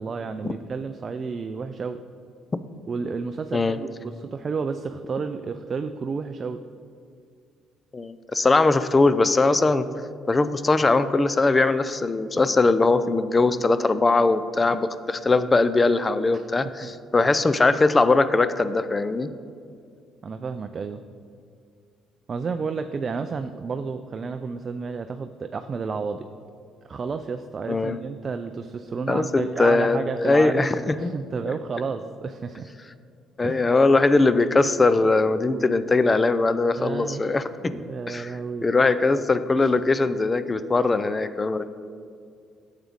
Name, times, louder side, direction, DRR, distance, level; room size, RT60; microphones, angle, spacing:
voice 1, 0.0-2.0 2.9-6.6 16.3-16.4 17.2-17.3 20.2-21.0 22.3-26.3 26.9-32.7 33.4-33.7 36.8-37.3 37.7-38.7, right 5 dB, 45° right, 8 dB, 0.3 m, -31 dB
voice 2, 7.9-9.9 10.3-19.3 27.7-28.0 29.1-31.1 33.4-38.3 38.6-41.6, left 3 dB, 25° left, 13 dB, 0.4 m, -21 dB
8.7 x 7.3 x 3.6 m, 2.3 s
supercardioid pair, 65°, 0 cm